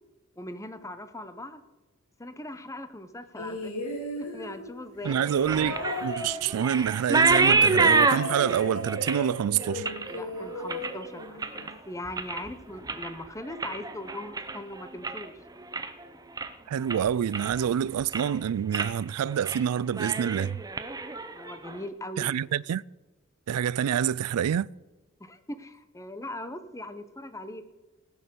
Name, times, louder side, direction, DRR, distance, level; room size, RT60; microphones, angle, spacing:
voice 1, 0.4-1.6 2.2-3.7 4.2-5.2 10.1-15.3 21.3-22.4 25.2-27.6, left 1 dB, 15° left, 0.8 m, -40 dB
sound 1, 3.4-11.8 12.8-12.9, left 1 dB, 75° left, 3.0 m, -36 dB
voice 2, 5.0-9.9 16.7-20.6 22.2-22.8 23.5-24.7, right 9 dB, 85° right, 0.3 m, -27 dB
sound 2, 5.1-11.7 12.1-12.5 12.8-15.3 15.6-16.0 16.4-16.5 16.9-17.7 18.0-18.4 18.7-18.9 19.3-19.6 19.9-21.8, right 4 dB, 15° right, 0.6 m, -27 dB
18.5 x 6.6 x 6.9 m
head